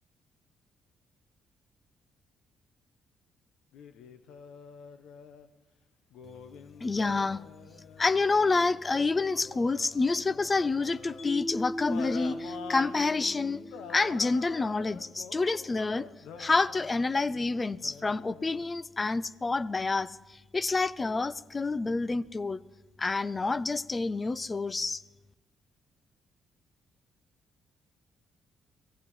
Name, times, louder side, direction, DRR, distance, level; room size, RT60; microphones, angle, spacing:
sound 1, 3.7-5.5 6.1-11.3 11.9-18.6, left 6 dB, 80° left, 1.0 m, -47 dB
voice 1, 6.8-7.4 8.0-13.6 13.9-16.1 16.4-22.6 23.0-25.0, left 3 dB, 25° left, 0.5 m, -28 dB
Mallet percussion, 11.2-14.4, equal, 60° left, 1.6 m, -39 dB
16.5 x 15.0 x 5.5 m
cardioid pair, 90°, 0 cm